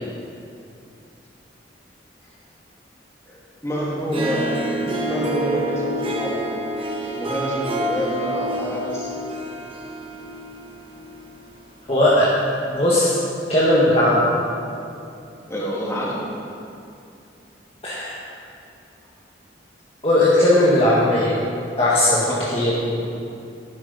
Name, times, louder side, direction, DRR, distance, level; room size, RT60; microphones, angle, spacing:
voice 1, 3.3-4.5 4.8-6.4 7.2-9.1 15.5-16.1 22.2-22.6, equal, 15° left, -5 dB, 2.6 m, -27 dB
Harp, 4.0-11.4, right 1 dB, 30° right, 1.1 m, -28 dB
voice 2, 11.9-12.3 12.6-13.2 13.5-14.3 17.8-18.2 20.0-21.3 21.8-23.0, left 1 dB, 30° left, -7 dB, 1.6 m, -18 dB
11.0 x 10.5 x 5.5 m, 2.6 s
head